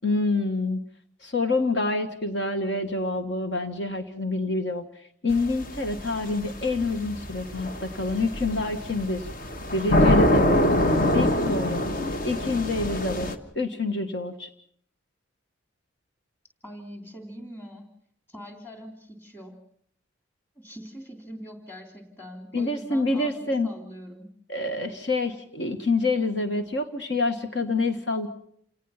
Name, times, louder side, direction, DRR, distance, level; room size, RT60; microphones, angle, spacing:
voice 1, 0.0-0.8 1.2-4.8 5.2-9.3 9.7-10.6 11.1-11.8 12.2-13.3 13.5-14.5 22.5-23.7 24.5-28.3, left 3 dB, 60° left, 6 dB, 1.5 m, -27 dB
sound 1, 5.3-13.4, left 1 dB, 45° left, 1.3 m, -25 dB
voice 2, 16.6-17.9 18.3-19.6 20.5-24.3, equal, 10° left, 5 dB, 3.1 m, -43 dB
28.5 x 18.0 x 5.8 m, 0.64 s
head